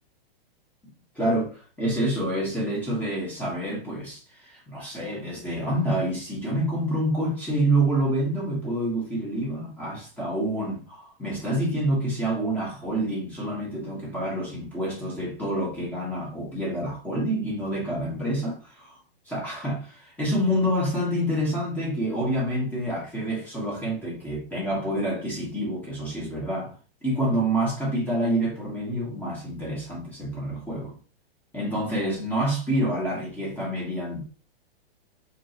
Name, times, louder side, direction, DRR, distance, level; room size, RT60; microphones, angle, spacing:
voice 1, 1.1-19.0 19.3-26.8 27.0-30.9 31.5-34.2, right 1 dB, 5° left, 1.6 m, -27 dB
4.2 x 3.3 x 2.8 m
hypercardioid pair, 150°, 31 cm